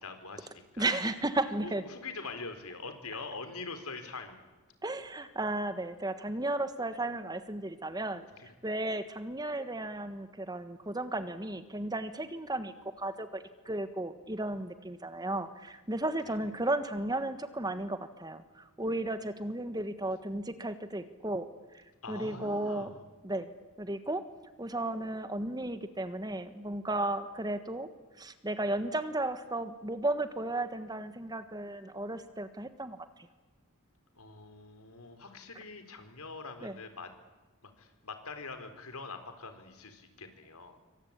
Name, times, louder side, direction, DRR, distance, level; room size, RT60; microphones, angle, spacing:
voice 1, 0.0-1.0 1.6-4.4 8.4-8.5 16.3-16.4 22.0-23.0 34.1-37.1 37.6-40.8, left 4 dB, 75° left, 8 dB, 4.1 m, -44 dB
voice 2, 0.8-1.8 4.8-8.3 8.6-21.5 21.7-22.9 23.2-23.5 23.8-24.2 24.6-27.9 28.2-33.0 36.6-36.8, right 2 dB, 20° right, 11 dB, 1.4 m, -34 dB
27.0 x 24.5 x 8.9 m, 1.2 s
head